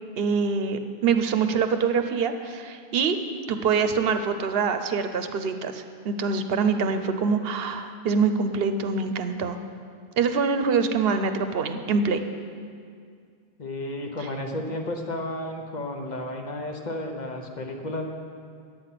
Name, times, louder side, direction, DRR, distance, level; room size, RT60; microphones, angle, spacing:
voice 1, 0.2-3.2 3.5-9.6 10.2-12.2, right 5 dB, 75° right, 8 dB, 0.8 m, -25 dB
voice 2, 13.6-18.1, left 1 dB, 45° left, 3 dB, 1.0 m, -32 dB
9.6 x 8.4 x 5.8 m, 2.2 s
omnidirectional pair, 1.0 m